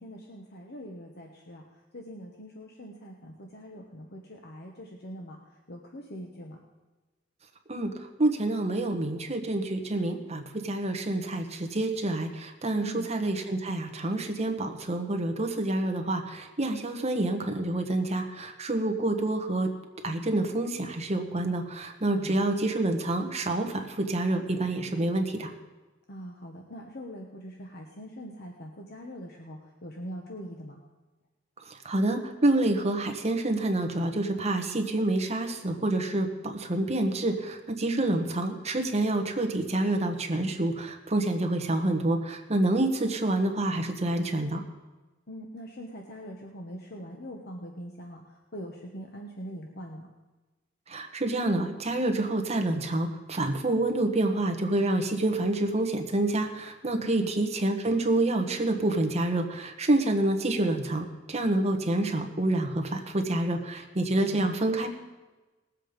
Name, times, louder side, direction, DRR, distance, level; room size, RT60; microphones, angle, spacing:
voice 1, 0.0-1.6 1.9-5.4 5.7-6.6 12.8-13.1 22.2-22.5 26.1-30.8 37.9-38.0 45.3-50.1 57.0-57.3 64.2-64.5, equal, 55° left, 1 dB, 1.2 m, -42 dB
voice 2, 8.2-19.7 20.0-25.5 31.8-44.6 50.9-64.9, right 2 dB, 35° right, 4 dB, 1.3 m, -27 dB
19.5 x 7.7 x 5.2 m, 1.2 s
head